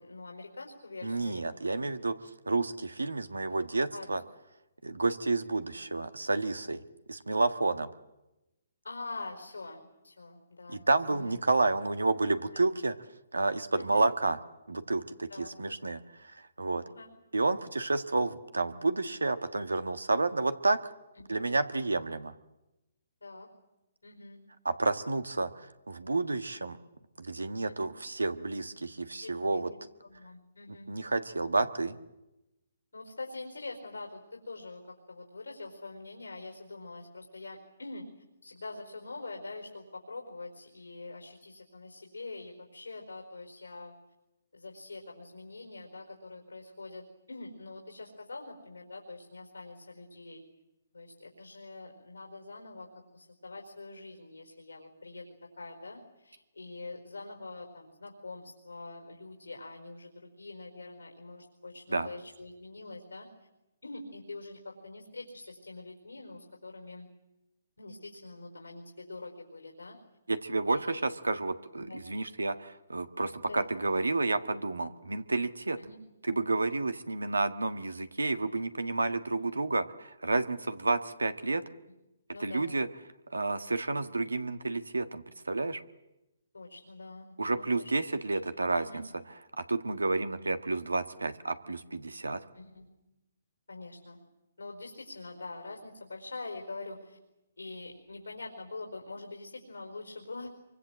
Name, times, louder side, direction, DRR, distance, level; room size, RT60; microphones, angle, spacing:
voice 1, 0.0-1.4 1.7-1.9 3.9-4.2 8.8-11.4 13.7-14.0 15.3-15.6 16.9-17.1 21.1-21.4 23.2-23.5 24.0-24.4 27.6-27.9 29.2-30.9 32.9-38.0 38.4-43.9 44.5-50.4 50.9-55.3 55.6-63.3 63.8-67.1 67.8-70.0 70.7-71.1 71.8-72.0 73.4-73.6 75.8-76.0 82.3-82.7 86.5-87.9 88.8-89.0 92.5-92.9 93.7-94.2 94.6-97.2 97.6-100.5, left 3 dB, 90° left, 2 dB, 4.8 m, -44 dB
voice 2, 1.0-2.1 2.5-4.2 4.8-6.8 7.1-7.9 10.7-12.9 13.3-14.4 14.7-16.8 17.3-20.8 21.3-22.3 24.6-26.8 27.2-29.7 30.9-32.0 61.9-62.1 70.3-75.8 76.3-81.6 82.4-82.9 83.3-85.8 87.4-89.0 89.6-92.4, right 3 dB, 90° right, 10 dB, 1.5 m, -30 dB
25.5 x 24.0 x 7.6 m, 0.96 s
figure-of-eight pair, 135°, 0 cm